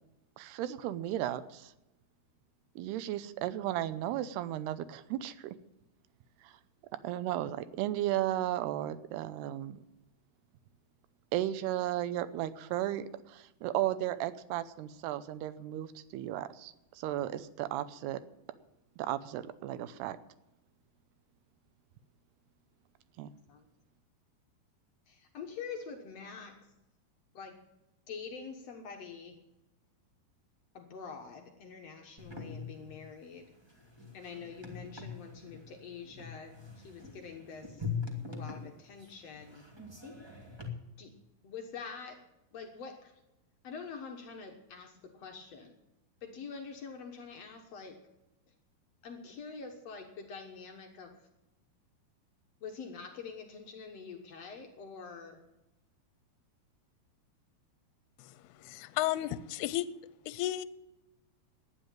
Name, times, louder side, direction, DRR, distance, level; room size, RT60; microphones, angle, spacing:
voice 1, 0.4-1.7 2.8-5.6 6.4-6.6 7.0-9.8 11.3-18.2 19.0-20.2 23.2-23.3, right 13 dB, 80° right, 14 dB, 2.8 m, -35 dB
voice 2, 25.1-26.6 27.3-27.5 28.1-29.4 30.7-33.5 34.1-37.8 38.3-39.6 41.0-41.1 41.4-42.2 42.5-43.1 43.6-45.7 46.2-48.0 49.0-51.1 52.6-55.4, left 5 dB, 65° left, 5 dB, 1.6 m, -45 dB
sound 1, 32.2-40.7, left 5 dB, 15° right, 0.8 m, -43 dB
voice 3, 58.2-59.9 60.3-60.7, left 14 dB, 80° left, 16 dB, 2.5 m, -33 dB
12.0 x 9.9 x 9.0 m, 0.95 s
omnidirectional pair, 4.7 m